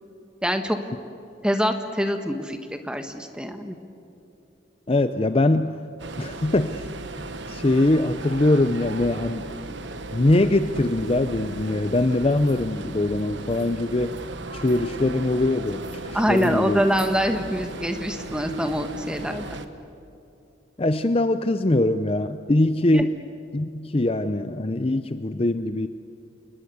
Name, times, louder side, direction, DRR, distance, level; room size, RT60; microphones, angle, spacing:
voice 1, 0.4-0.8 1.4-3.8 16.1-19.4 22.9-23.1, equal, 5° right, 6 dB, 1.4 m, -25 dB
voice 2, 4.9-5.8 6.2-6.9 7.5-9.5 10.1-14.1 14.5-16.8 20.8-23.2 23.5-25.9, left 2 dB, 30° left, 10 dB, 0.6 m, -22 dB
sound 1, 6.0-19.7, right 2 dB, 60° right, 1.3 m, -36 dB
30.0 x 20.5 x 8.1 m, 2.7 s
head